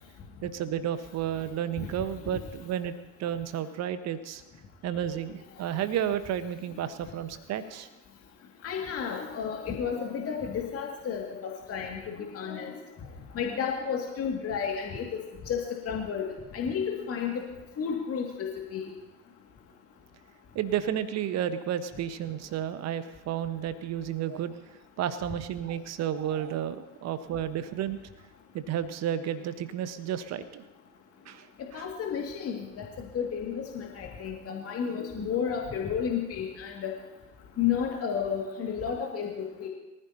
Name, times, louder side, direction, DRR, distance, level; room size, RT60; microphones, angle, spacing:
voice 1, 0.4-4.4 4.8-7.9 20.5-24.5 25.0-28.0 28.5-30.6 31.2-31.5 31.7-31.8, right 10 dB, 45° right, 11 dB, 1.3 m, -32 dB
voice 2, 8.6-12.7 13.3-17.4 17.8-18.9 31.7-32.8 33.1-36.9 37.6-39.7, left 7 dB, 40° left, 0 dB, 2.3 m, -32 dB
23.5 x 15.0 x 2.9 m, 1.1 s
figure-of-eight pair, 60°, 38 cm